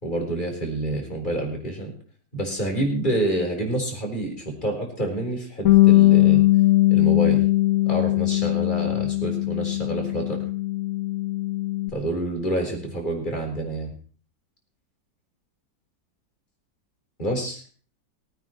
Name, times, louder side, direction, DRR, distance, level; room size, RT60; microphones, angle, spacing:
voice 1, 0.0-1.9 2.3-6.4 6.9-7.4 7.9-10.4 11.9-13.9 17.2-17.6, right 1 dB, 25° left, 0 dB, 4.3 m, -28 dB
Bass guitar, 5.7-11.9, left 17 dB, 55° left, 1.4 m, -20 dB
19.0 x 9.2 x 4.6 m, 0.41 s
omnidirectional pair, 2.0 m